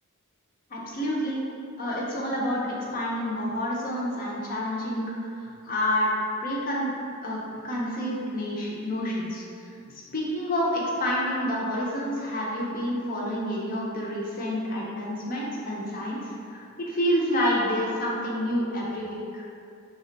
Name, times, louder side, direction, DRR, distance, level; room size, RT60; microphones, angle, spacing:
voice 1, 0.7-1.4 1.8-6.1 6.4-6.9 7.2-19.4, equal, 40° left, -4 dB, 0.5 m, -29 dB
3.3 x 2.1 x 3.8 m, 2.4 s
head